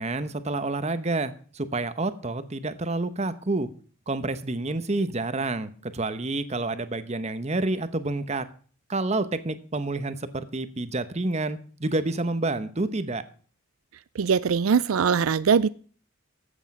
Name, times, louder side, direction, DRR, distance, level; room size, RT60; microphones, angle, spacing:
voice 1, 0.0-3.7 4.1-8.5 8.9-13.2, right 2 dB, 30° right, 12 dB, 0.9 m, -29 dB
voice 2, 14.2-15.7, right 6 dB, 85° right, 17 dB, 0.4 m, -21 dB
13.5 x 8.2 x 5.3 m, 0.42 s
head